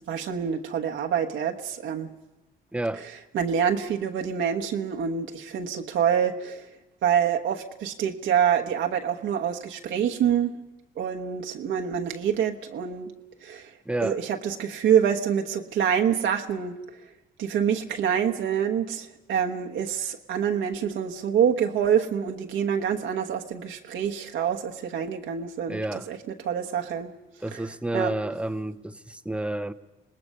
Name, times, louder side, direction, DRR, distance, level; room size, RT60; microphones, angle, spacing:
voice 1, 0.1-2.1 3.3-6.7 7.0-10.5 11.0-13.1 13.4-13.7 14.0-16.8 17.4-27.1 27.5-27.6 27.9-28.1, right 8 dB, 80° right, 2 dB, 1.2 m, -26 dB
voice 2, 2.7-3.0 13.9-14.2 25.7-26.1 27.4-29.7, right 1 dB, 5° right, 12 dB, 0.8 m, -30 dB
26.0 x 19.5 x 5.5 m, 0.99 s
cardioid pair, 90°, 20 cm